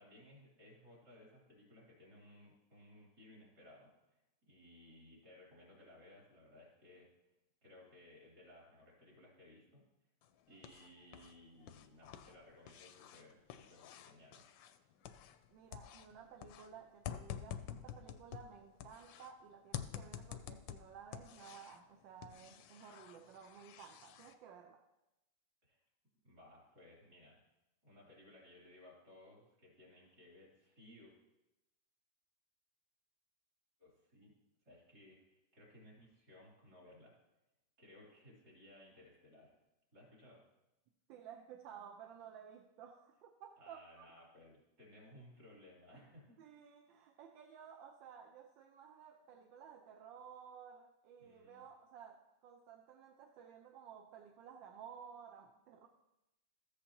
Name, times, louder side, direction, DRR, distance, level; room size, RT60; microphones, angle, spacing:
voice 1, 0.0-7.1 7.6-9.8 10.5-14.4 25.6-25.8 26.2-27.4 27.8-31.1 33.8-34.3 34.7-37.1 37.8-39.6 39.9-40.4 43.6-46.4 51.2-51.6, left 1 dB, 55° right, -4 dB, 3.8 m, -60 dB
sound 1, 10.2-11.3 11.6-15.5 15.7-19.3 19.7-21.8 22.2-24.3, left 10 dB, 85° left, 1.3 m, -49 dB
voice 2, 15.5-24.8 41.1-44.2 46.4-55.9, right 7 dB, 85° right, 4 dB, 1.4 m, -55 dB
14.0 x 8.1 x 2.9 m, 0.93 s
omnidirectional pair, 2.0 m